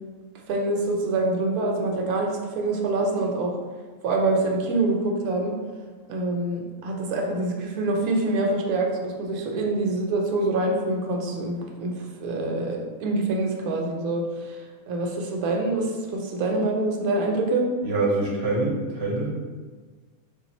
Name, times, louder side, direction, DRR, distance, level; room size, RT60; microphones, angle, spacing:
voice 1, 0.5-3.6 4.0-5.6 6.1-14.6 14.9-17.7, right 2 dB, 80° right, 1 dB, 1.1 m, -25 dB
voice 2, 17.8-19.3, right 2 dB, 55° right, -3 dB, 0.8 m, -25 dB
3.6 x 2.4 x 4.0 m, 1.5 s
omnidirectional pair, 1.5 m